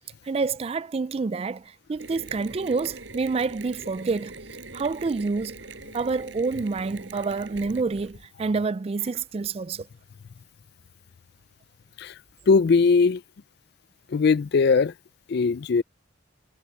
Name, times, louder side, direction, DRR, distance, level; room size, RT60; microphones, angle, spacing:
voice 1, 0.3-4.3 4.7-5.5 5.9-9.9, right 4 dB, 30° right, 0.3 m, -28 dB
Mechanisms, 2.0-8.2, right 3 dB, 70° right, 5.2 m, -42 dB
voice 2, 12.5-13.2 14.1-14.9 15.3-15.8, left 4 dB, 55° left, 0.4 m, -20 dB
head